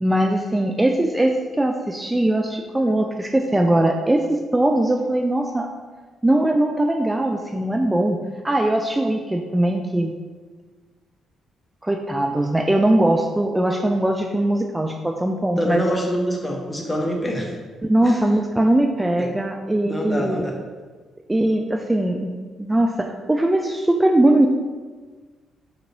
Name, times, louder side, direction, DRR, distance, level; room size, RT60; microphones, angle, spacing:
voice 1, 0.0-5.7 6.2-8.2 8.4-10.1 11.8-15.8 17.8-20.4 21.3-24.5, right 1 dB, 15° right, 3 dB, 0.3 m, -20 dB
voice 2, 15.6-17.6 18.0-18.2 19.2-19.4 19.8-20.6, equal, 20° left, 1 dB, 0.8 m, -25 dB
5.1 x 2.9 x 2.6 m, 1.4 s
figure-of-eight pair, 40°, 0 cm